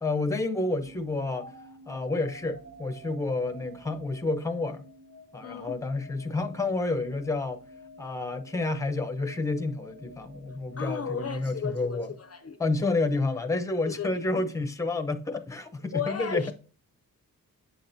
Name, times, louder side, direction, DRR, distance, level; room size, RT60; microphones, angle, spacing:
voice 1, 0.0-1.5 1.9-4.8 5.3-7.6 8.0-12.1 12.6-16.5, left 3 dB, 10° left, 0.7 m, -29 dB
sound 1, 0.8-12.9, equal, 65° right, 3.1 m, -50 dB
voice 2, 5.4-5.8 10.8-12.6 13.8-14.1 15.9-16.5, left 7 dB, 45° left, 0.5 m, -34 dB
8.3 x 5.8 x 2.6 m
wide cardioid pair, 170°, 35 cm